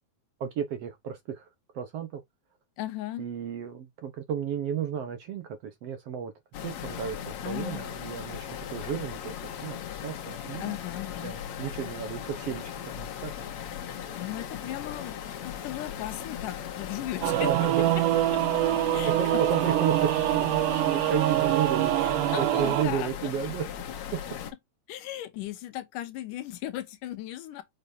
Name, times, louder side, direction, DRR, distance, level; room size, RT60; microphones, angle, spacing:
voice 1, 0.4-1.5 1.7-2.2 3.2-6.3 6.6-9.4 9.6-10.8 11.2-13.3 17.4-17.8 19.2-21.9 22.4-23.7, right 8 dB, 60° right, 1.7 m, -33 dB
voice 2, 2.8-3.2 7.4-7.8 10.6-11.4 14.2-17.5 18.3-18.6 18.9-19.4 20.6-20.7 22.0-23.1 24.9-27.6, left 14 dB, 80° left, 2.5 m, -37 dB
sound 1, 6.5-24.5, left 9 dB, 60° left, 2.3 m, -38 dB
Singing / Musical instrument, 17.2-22.9, right 15 dB, 80° right, 2.0 m, -25 dB
7.3 x 5.8 x 2.7 m
omnidirectional pair, 3.8 m